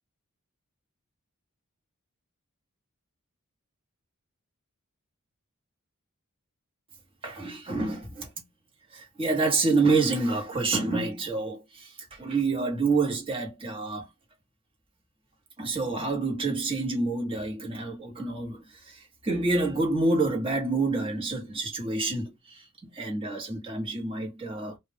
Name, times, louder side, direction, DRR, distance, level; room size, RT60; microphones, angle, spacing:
voice 1, 7.2-8.3 8.9-14.1 15.6-24.8, right 3 dB, 25° right, 1.1 m, -28 dB
2.4 x 2.2 x 3.4 m
head